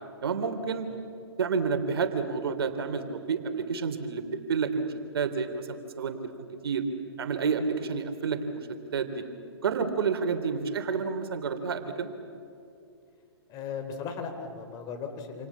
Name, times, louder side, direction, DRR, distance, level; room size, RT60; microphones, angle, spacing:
voice 1, 0.2-0.9 1.4-4.9 5.1-6.3 6.6-6.8 7.2-8.6 8.9-9.2 9.6-12.1, right 5 dB, 60° right, 8 dB, 3.2 m, -29 dB
voice 2, 13.5-15.5, left 6 dB, 25° left, 5 dB, 3.9 m, -37 dB
28.5 x 28.0 x 7.4 m, 2.5 s
figure-of-eight pair, 125°, 14 cm